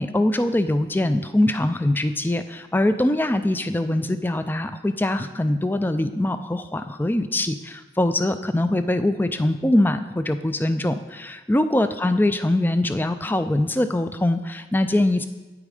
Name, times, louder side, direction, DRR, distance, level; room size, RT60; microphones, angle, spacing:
voice 1, 0.0-15.3, left 1 dB, 10° left, 10 dB, 0.4 m, -23 dB
9.0 x 8.5 x 5.0 m, 1.2 s
head